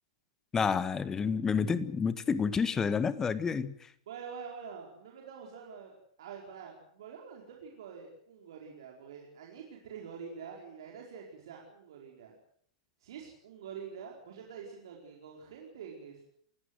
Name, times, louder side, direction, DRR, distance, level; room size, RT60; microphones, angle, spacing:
voice 1, 0.5-3.8, left 6 dB, 15° left, 14 dB, 1.6 m, -29 dB
voice 2, 4.1-12.3 13.0-16.3, right 6 dB, 60° right, -1 dB, 4.7 m, -46 dB
28.5 x 16.5 x 7.9 m, 0.65 s
figure-of-eight pair, 100°, 3 cm